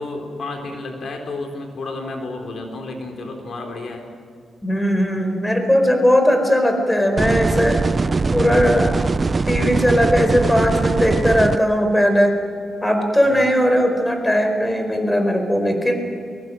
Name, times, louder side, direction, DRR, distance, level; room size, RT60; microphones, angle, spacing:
voice 1, 0.0-4.1 13.2-13.5, left 2 dB, 60° left, 3 dB, 3.7 m, -31 dB
voice 2, 4.6-7.8 8.3-9.0 9.5-12.4 12.8-15.9, equal, 10° left, 5 dB, 4.5 m, -18 dB
sound 1, 7.2-11.6, right 4 dB, 30° right, 0.6 m, -21 dB
23.5 x 22.5 x 7.7 m, 2.3 s
cardioid pair, 105°, 0 cm